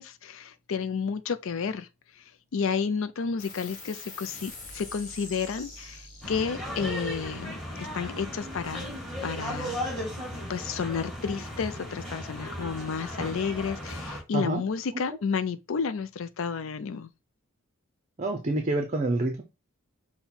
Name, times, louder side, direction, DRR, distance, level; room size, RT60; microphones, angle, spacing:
voice 1, 0.0-1.9 2.2-2.3 2.5-8.9 9.2-9.8 10.5-17.1, left 6 dB, 60° left, 0.4 m, -31 dB
sound 1, 3.4-10.3, left 2 dB, 35° left, 1.6 m, -47 dB
sound 2, 6.2-14.2, equal, ahead, 2.9 m, -36 dB
voice 2, 18.2-19.4, right 2 dB, 35° right, 0.6 m, -27 dB
5.6 x 2.2 x 4.3 m
head